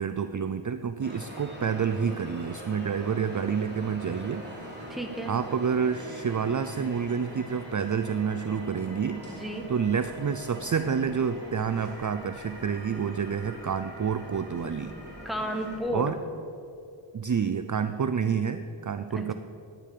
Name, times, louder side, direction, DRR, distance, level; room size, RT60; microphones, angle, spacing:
voice 1, 0.0-4.9 5.3-9.2 9.7-14.9 15.9-16.2 17.1-19.3, right 6 dB, 40° right, 10 dB, 0.5 m, -29 dB
sound 1, 1.0-15.8, right 1 dB, 20° right, 3.4 m, -42 dB
voice 2, 4.9-5.3 9.3-9.7 15.2-16.2 19.1-19.3, equal, ahead, 3 dB, 1.5 m, -32 dB
10.5 x 9.5 x 6.6 m, 2.7 s
wide cardioid pair, 55°, 50 cm